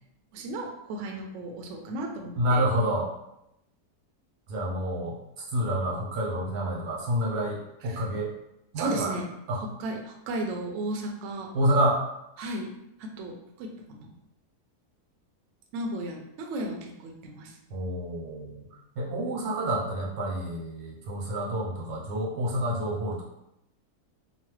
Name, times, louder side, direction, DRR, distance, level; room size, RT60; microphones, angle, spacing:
voice 1, 0.3-2.6 7.8-8.0 8.8-9.3 9.8-11.5 12.4-12.7 13.0-14.1 15.7-17.6, right 1 dB, 70° right, 1 dB, 0.7 m, -35 dB
voice 2, 2.4-3.1 4.5-5.2 5.5-8.3 8.7-9.1 9.5-9.6 11.5-12.0 17.7-18.6 19.0-23.2, right 1 dB, 85° right, -3 dB, 1.3 m, -28 dB
3.0 x 2.0 x 3.1 m, 0.84 s
omnidirectional pair, 1.6 m